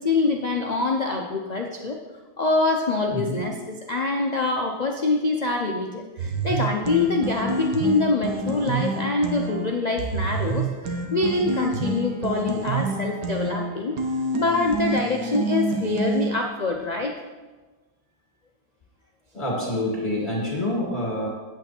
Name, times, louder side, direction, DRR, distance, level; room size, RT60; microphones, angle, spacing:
voice 1, 0.0-2.0 2.4-14.0 14.3-17.1, left 3 dB, 80° left, 1 dB, 0.3 m, -25 dB
voice 2, 3.1-3.4 19.3-21.3, left 1 dB, 30° left, -3 dB, 2.3 m, -27 dB
sound 1, 6.2-16.3, right 3 dB, 80° right, 1.6 m, -28 dB
8.9 x 8.2 x 4.4 m, 1.3 s
omnidirectional pair, 1.8 m